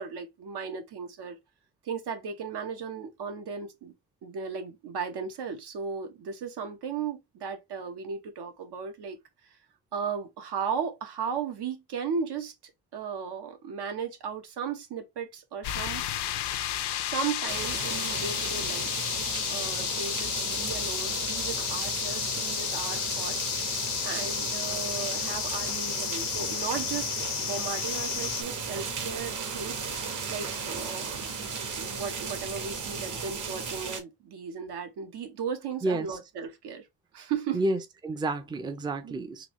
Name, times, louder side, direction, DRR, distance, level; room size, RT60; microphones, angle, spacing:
voice 1, 0.0-1.4 1.8-3.9 4.2-9.2 9.4-9.6 9.9-12.5 12.9-16.0 17.1-19.1 19.5-23.5 24.0-27.1 27.4-29.9 30.3-31.3 31.8-36.9 37.1-37.6 39.0-39.2, right 6 dB, 75° right, 1.2 m, -36 dB
sound 1, 15.6-28.4, left 12 dB, 75° left, 0.6 m, -32 dB
sound 2, 17.5-34.0, right 5 dB, 45° right, 1.1 m, -35 dB
voice 2, 35.8-36.2 37.5-39.5, right 2 dB, 10° right, 0.5 m, -30 dB
3.9 x 2.8 x 3.0 m
cardioid pair, 115°, 40 cm